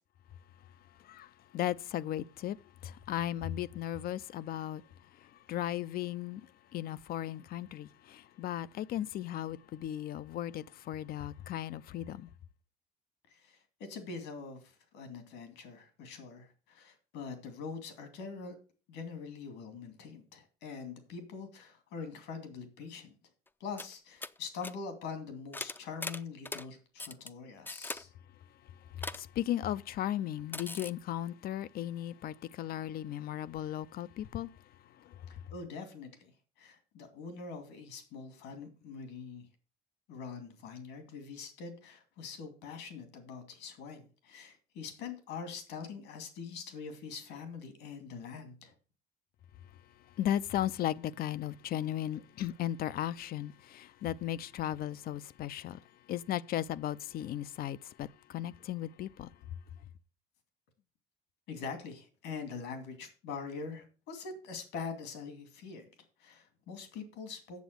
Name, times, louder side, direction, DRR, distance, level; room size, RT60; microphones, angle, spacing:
voice 1, 1.0-2.6 2.8-4.8 5.2-6.5 6.7-12.3 28.9-34.5 35.0-35.3 50.2-59.3, left 12 dB, 65° left, 0.5 m, -36 dB
voice 2, 13.3-18.5 18.9-23.1 23.6-28.1 35.3-39.5 40.1-48.7 61.5-65.9 66.2-67.6, left 5 dB, 90° left, 2.5 m, -44 dB
sound 1, 23.5-23.6 23.8-23.9 24.2-24.4 24.6-24.7 25.5-26.7 27.0-27.3 27.7-28.0 29.0-29.2 30.5-30.9, left 2 dB, 10° left, 0.5 m, -40 dB
8.3 x 7.0 x 6.6 m
cardioid pair, 110°, 17 cm